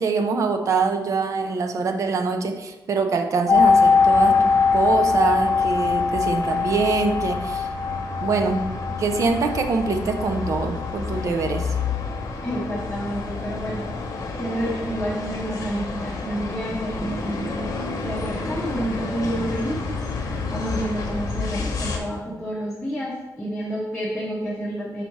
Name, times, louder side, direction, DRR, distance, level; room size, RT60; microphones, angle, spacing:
voice 1, 0.0-7.7 8.2-11.7, right 4 dB, 45° right, 7 dB, 0.6 m, -24 dB
sound 1, 3.5-22.0, left 3 dB, 55° left, 1.0 m, -31 dB
sound 2, 3.5-13.2 13.5-13.6, left 5 dB, 25° left, 0.4 m, -22 dB
voice 2, 12.4-13.9 14.4-25.0, right 1 dB, 5° left, -6 dB, 1.0 m, -29 dB
5.7 x 4.2 x 4.6 m, 1.1 s
wide cardioid pair, 170°, 7 cm